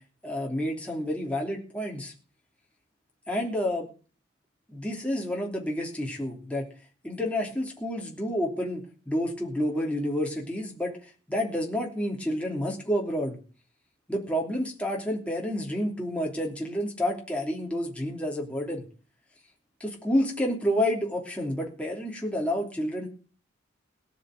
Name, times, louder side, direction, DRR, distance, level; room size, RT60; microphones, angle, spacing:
voice 1, 0.2-2.1 3.3-3.9 4.7-6.7 7.0-10.9 11.3-13.4 14.1-18.8 19.8-23.1, equal, 5° left, -1 dB, 3.1 m, -29 dB
17.5 x 6.0 x 9.1 m, 0.37 s
head